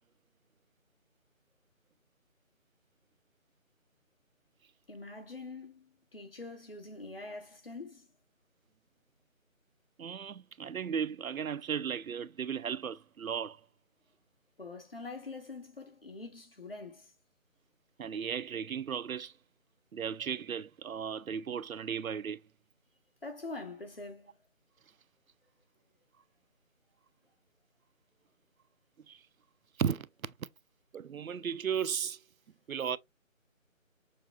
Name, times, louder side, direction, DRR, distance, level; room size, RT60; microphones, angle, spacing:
voice 1, 4.9-8.1 14.6-17.1 23.2-24.4, left 3 dB, 45° left, 1.2 m, -44 dB
voice 2, 10.0-13.6 18.0-19.3 19.9-22.4 29.1-29.2 29.8-30.3 30.9-32.2 32.7-33.0, right 7 dB, 90° right, 0.6 m, -35 dB
6.8 x 3.2 x 2.4 m
figure-of-eight pair, 180°, 41 cm